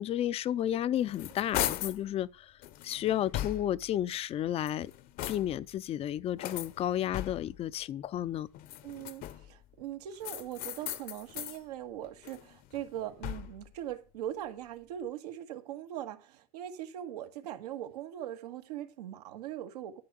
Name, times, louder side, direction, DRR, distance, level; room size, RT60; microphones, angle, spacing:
voice 1, 0.0-2.5 2.8-4.9 5.3-8.5, left 11 dB, 30° left, 0.6 m, -32 dB
sound 1, 0.7-2.1 2.6-3.9 4.5-5.7 6.4-7.6 8.5-9.6 10.2-11.6 12.0-13.7, left 13 dB, 50° left, 0.9 m, -38 dB
voice 2, 8.8-20.0, right 11 dB, 85° right, 1.8 m, -41 dB
12.5 x 5.7 x 6.7 m
supercardioid pair, 120°, 20 cm